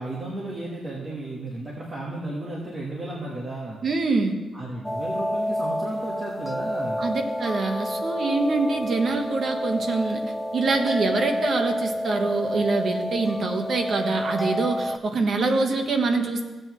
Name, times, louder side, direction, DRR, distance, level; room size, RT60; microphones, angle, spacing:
voice 1, 0.0-3.8 4.5-7.0, right 1 dB, 30° right, -4 dB, 1.3 m, -34 dB
voice 2, 3.8-4.3 7.0-10.2 10.5-16.4, right 3 dB, 45° right, 5 dB, 1.0 m, -25 dB
sound 1, 4.8-15.0, equal, ahead, 0.3 m, -29 dB
15.5 x 7.9 x 3.1 m, 1.2 s
wide cardioid pair, 160°, 0 cm